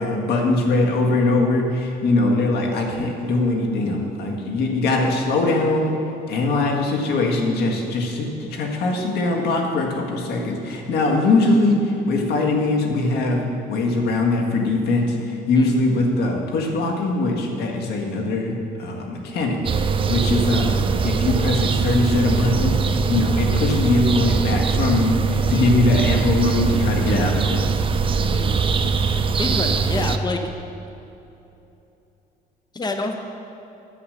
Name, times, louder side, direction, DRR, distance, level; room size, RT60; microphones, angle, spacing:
voice 1, 0.0-5.9 6.3-18.5 18.8-19.6 20.1-27.7, left 2 dB, 70° left, 1 dB, 1.8 m, -21 dB
sound 1, 19.7-30.2, right 5 dB, 30° right, 0.5 m, -21 dB
voice 2, 25.5-25.8 28.3-28.6 29.4-30.4 32.7-33.2, left 2 dB, 25° left, 5 dB, 1.1 m, -27 dB
9.9 x 8.3 x 6.6 m, 2.9 s
cardioid pair, 110°, 17 cm